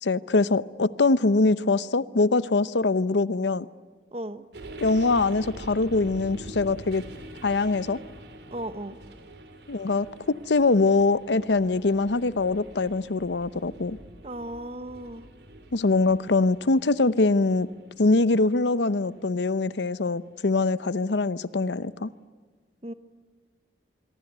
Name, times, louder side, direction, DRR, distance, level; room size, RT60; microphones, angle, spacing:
voice 1, 0.0-3.7 4.8-7.0 7.4-8.0 9.7-14.0 15.7-17.7 18.0-22.1, left 3 dB, 80° left, 17 dB, 0.8 m, -23 dB
voice 2, 4.1-4.4 8.5-9.0 14.2-15.3 22.8-22.9, right 1 dB, 35° right, 12 dB, 1.2 m, -35 dB
sound 1, 4.5-20.8, right 1 dB, 70° right, 3.6 m, -45 dB
26.0 x 23.0 x 8.1 m, 1.5 s
head